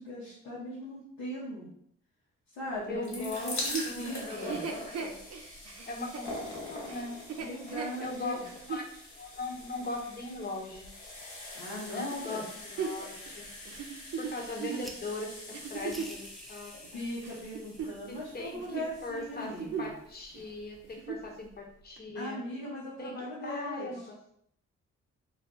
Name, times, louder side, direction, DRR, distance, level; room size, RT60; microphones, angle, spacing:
voice 1, 0.0-1.7 2.5-4.7 7.4-8.4 11.5-12.4 16.9-19.9 22.1-24.1, equal, 85° left, -9 dB, 0.9 m, -39 dB
sound 1, 2.8-19.8 20.6-20.7 20.9-21.0, left 2 dB, 65° left, 1.3 m, -44 dB
voice 2, 2.9-3.6 3.8-5.2 5.9-7.1 8.0-10.9 11.8-12.5 12.7-13.5 14.2-17.0 18.1-22.4 23.0-24.2, left 2 dB, 30° left, 1 dB, 0.9 m, -40 dB
Chuckle chortle, 3.3-8.9 9.5-9.6 12.2-16.2 16.8-18.3 18.6-18.9 19.3-20.0 20.3-20.4 20.8-21.3 22.0-22.1, right 6 dB, 55° right, 0.6 m, -39 dB
sound 2, 14.8-20.9, equal, ahead, 0.5 m, -54 dB
2.5 x 2.3 x 3.7 m, 0.69 s
supercardioid pair, 50°, 30 cm